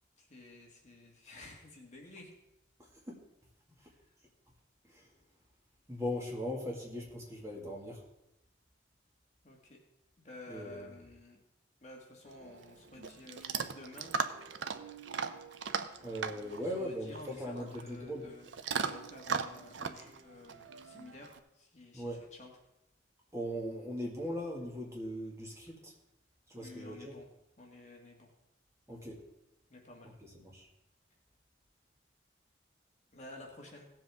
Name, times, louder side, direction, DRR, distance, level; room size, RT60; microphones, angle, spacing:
voice 1, 0.2-2.3 3.8-4.0 9.4-9.8 10.2-11.4 11.8-14.1 16.3-18.5 18.8-22.5 26.5-27.3 27.6-28.3 29.7-30.1 33.1-33.9, left 2 dB, 40° left, 0 dB, 1.8 m, -52 dB
voice 2, 5.9-8.0 10.5-10.9 16.0-18.2 21.9-22.2 23.3-25.9 26.5-27.1 28.9-29.2 30.5-30.7, equal, 15° right, -2 dB, 2.1 m, -39 dB
Chewing mastication / Dog, 12.3-21.4, right 5 dB, 80° right, 0.6 m, -39 dB
17.0 x 7.5 x 3.6 m, 0.88 s
head